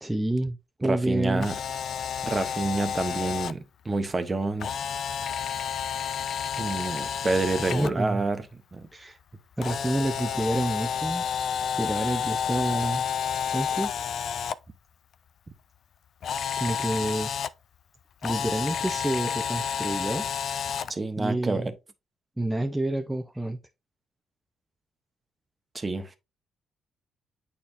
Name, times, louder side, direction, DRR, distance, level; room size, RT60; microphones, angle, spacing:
voice 1, 0.0-1.5 7.7-8.2 8.9-9.2 9.6-11.2 11.8-13.0 13.5-13.9 16.6-17.3 18.2-20.3 21.2-21.7 22.4-23.6, right 1 dB, 10° right, 0.6 m, -28 dB
voice 2, 0.8-1.5 2.2-4.7 6.6-8.9 20.9-21.7 25.7-26.1, right 3 dB, 25° right, 1.1 m, -28 dB
Camera, 1.3-3.5 4.6-7.9 9.6-14.5 16.2-17.5 18.2-20.9, left 7 dB, 60° left, 0.4 m, -30 dB
8.7 x 4.2 x 2.6 m
cardioid pair, 90°, 0 cm